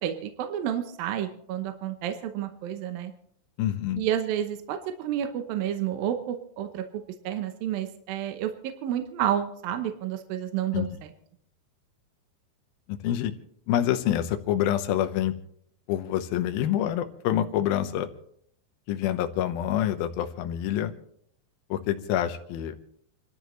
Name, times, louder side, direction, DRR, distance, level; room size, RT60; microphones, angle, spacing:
voice 1, 0.0-3.1 4.0-6.9 7.2-11.1, right 10 dB, 70° right, 7 dB, 2.4 m, -30 dB
voice 2, 3.6-4.0 10.7-10.9 12.9-13.3 13.7-15.3 15.9-18.1 18.9-20.9 21.7-22.8, left 11 dB, 70° left, 7 dB, 2.6 m, -26 dB
28.5 x 12.5 x 3.2 m, 0.68 s
omnidirectional pair, 4.8 m